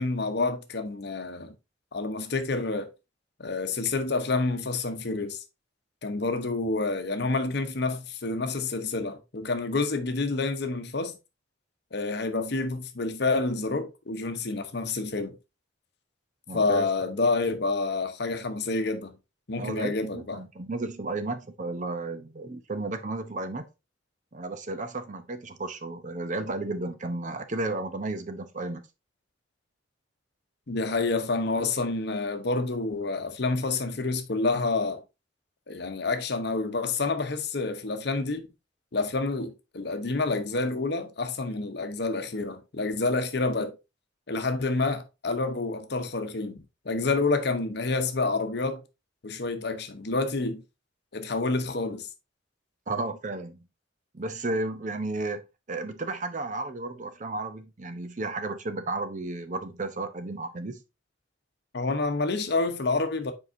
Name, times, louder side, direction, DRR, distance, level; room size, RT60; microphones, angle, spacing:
voice 1, 0.0-1.5 1.9-2.9 3.4-5.4 6.0-11.2 11.9-15.4 16.5-19.2 19.5-20.4 30.7-35.0 35.7-38.5 38.9-43.7 44.3-48.8 49.2-50.6 51.1-52.1 61.7-63.3, left 3 dB, 60° left, 0.9 m, -28 dB
voice 2, 16.5-16.9 19.6-23.6 24.3-28.9 52.9-53.7 54.1-55.4 55.7-60.8, right 2 dB, 40° right, 0.7 m, -33 dB
7.6 x 4.7 x 2.7 m
head